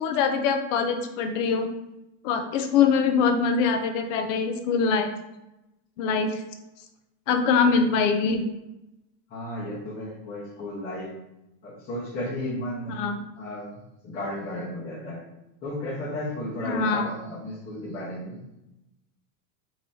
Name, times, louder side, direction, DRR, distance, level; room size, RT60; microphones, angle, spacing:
voice 1, 0.0-1.7 2.2-5.1 6.0-6.4 7.3-8.4 12.9-13.2 16.7-17.1, left 5 dB, 50° left, 6 dB, 0.5 m, -23 dB
voice 2, 9.3-11.1 11.6-13.0 13.4-15.2 15.6-18.4, left 1 dB, 25° left, -8 dB, 1.0 m, -34 dB
5.3 x 3.0 x 2.7 m, 0.92 s
supercardioid pair, 160°, 50 cm